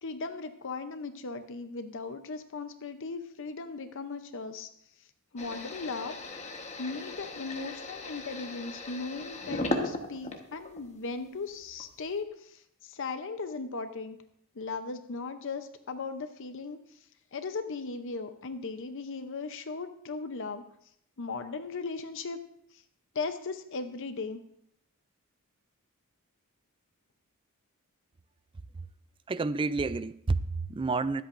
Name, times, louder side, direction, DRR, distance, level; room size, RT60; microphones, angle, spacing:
voice 1, 0.0-4.7 5.3-6.2 6.8-14.2 14.6-16.8 17.3-20.6 21.2-22.4 23.1-24.4, left 4 dB, 60° left, 8 dB, 0.7 m, -37 dB
sound 1, 5.4-10.9 11.3-12.1, left 2 dB, 30° left, 1.2 m, -37 dB
voice 2, 29.3-31.2, right 3 dB, 25° right, 14 dB, 0.3 m, -29 dB
23.0 x 8.3 x 2.6 m, 0.71 s
head